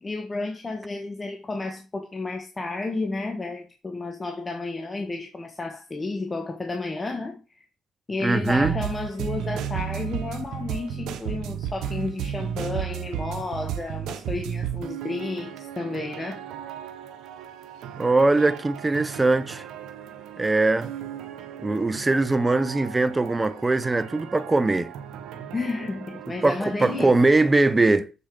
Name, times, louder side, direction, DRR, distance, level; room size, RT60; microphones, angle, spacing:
voice 1, 0.0-7.4 8.1-16.4 25.5-27.2, left 3 dB, 25° left, 1.6 m, -32 dB
voice 2, 8.2-8.8 18.0-19.6 20.4-20.9 21.6-24.9 26.4-28.1, right 2 dB, 20° right, 0.9 m, -21 dB
sound 1, 8.5-27.7, right 9 dB, 85° right, 1.1 m, -35 dB
7.2 x 6.9 x 5.1 m
cardioid pair, 90°, 0 cm